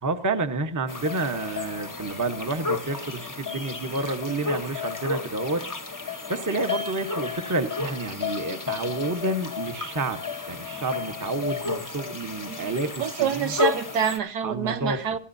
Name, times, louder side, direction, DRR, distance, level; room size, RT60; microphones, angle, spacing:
voice 1, 0.0-5.6 5.9-10.2 10.5-13.5 14.4-15.0, right 2 dB, 15° right, 0.8 m, -29 dB
sound 1, 0.9-14.2, left 4 dB, 15° left, 0.8 m, -32 dB
voice 2, 13.0-15.2, right 8 dB, 70° right, 1.5 m, -26 dB
27.0 x 14.0 x 2.7 m
omnidirectional pair, 1.8 m